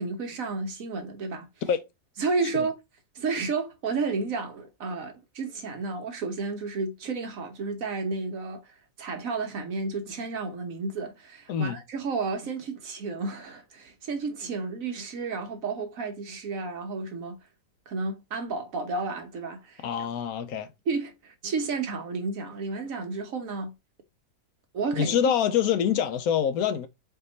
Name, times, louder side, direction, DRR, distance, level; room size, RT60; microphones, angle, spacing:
voice 1, 0.0-1.5 2.2-2.8 3.1-17.4 17.9-19.9 20.9-23.7 24.7-25.2, right 4 dB, 60° right, 1.2 m, -32 dB
voice 2, 11.5-11.8 19.8-20.7 25.0-26.9, left 8 dB, 70° left, 1.0 m, -25 dB
4.5 x 2.8 x 3.8 m
omnidirectional pair, 1.7 m